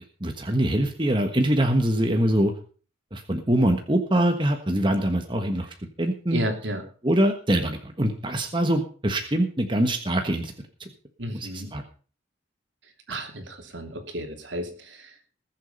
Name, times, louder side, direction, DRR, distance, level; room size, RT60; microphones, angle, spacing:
voice 1, 0.2-2.5 3.1-5.7 6.0-6.4 7.0-10.5 10.8-10.9 11.4-11.8 13.1-13.2, right 1 dB, 25° right, 5 dB, 1.4 m, -23 dB
voice 2, 6.3-6.8 11.2-11.7 13.1-15.1, equal, 70° right, 5 dB, 3.0 m, -32 dB
20.0 x 7.5 x 5.4 m, 0.40 s
head